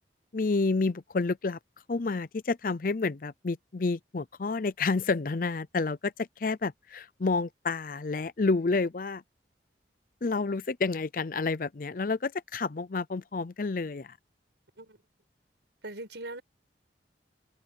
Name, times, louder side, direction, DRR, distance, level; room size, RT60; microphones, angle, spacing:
voice 1, 0.3-1.6 1.9-9.2 10.2-14.2, left 3 dB, 50° left, 0.5 m, -29 dB
voice 2, 15.8-16.4, right 2 dB, 80° right, 5.1 m, -40 dB
head